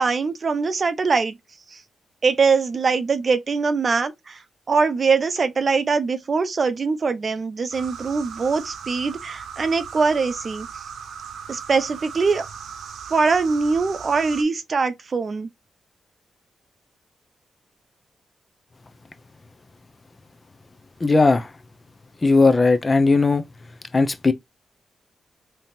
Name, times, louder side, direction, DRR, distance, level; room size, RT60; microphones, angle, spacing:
voice 1, 0.0-1.3 1.7-1.8 2.2-10.9 11.5-12.4 13.1-15.5, right 4 dB, 50° right, 0.7 m, -22 dB
sound 1, 7.7-14.4, right 7 dB, 85° right, 0.8 m, -38 dB
voice 2, 21.0-21.5 22.2-23.4 23.9-24.3, left 3 dB, 35° left, 0.7 m, -17 dB
3.5 x 2.9 x 2.7 m
cardioid pair, 70°, 0 cm